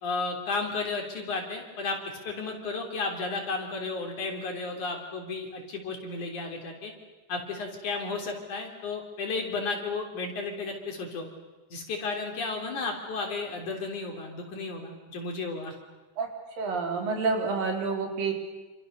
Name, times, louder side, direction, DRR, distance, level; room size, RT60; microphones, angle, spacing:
voice 1, 0.0-6.9 7.3-11.3 11.7-15.7, left 3 dB, 60° left, 2 dB, 4.8 m, -33 dB
voice 2, 16.6-18.3, right 4 dB, 85° right, 2 dB, 5.8 m, -28 dB
28.0 x 27.0 x 6.7 m, 1.2 s
omnidirectional pair, 3.9 m